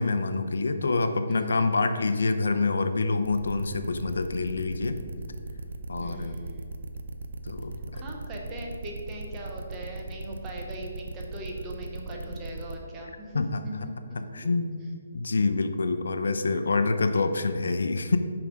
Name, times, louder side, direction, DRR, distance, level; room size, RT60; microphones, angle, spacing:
voice 1, 0.0-5.0 5.9-6.4 7.5-8.0 13.3-13.6 14.2-14.9 15.1-18.2, left 3 dB, 90° left, 9 dB, 0.6 m, -26 dB
voice 2, 1.3-1.6 6.0-6.7 7.9-14.5, right 1 dB, 15° right, 0 dB, 0.7 m, -40 dB
sound 1, 3.2-12.8, right 2 dB, 70° right, 0.5 m, -38 dB
5.8 x 5.3 x 4.9 m, 2.1 s
hypercardioid pair, 175°, 0 cm